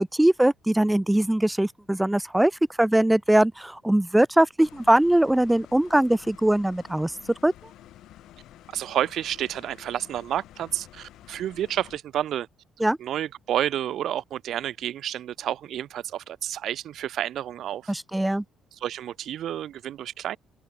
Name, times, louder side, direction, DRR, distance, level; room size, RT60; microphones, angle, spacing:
voice 1, 0.0-2.5 2.8-7.1 7.4-7.5 12.8-13.0 17.9-18.4, right 1 dB, 5° right, 1.0 m, -21 dB
sound 1, 4.6-12.0, left 14 dB, 70° left, 6.7 m, -50 dB
voice 2, 8.7-12.5 13.0-17.9 18.8-20.4, right 11 dB, 55° right, 3.7 m, -30 dB
open air
cardioid pair, 170°, 0 cm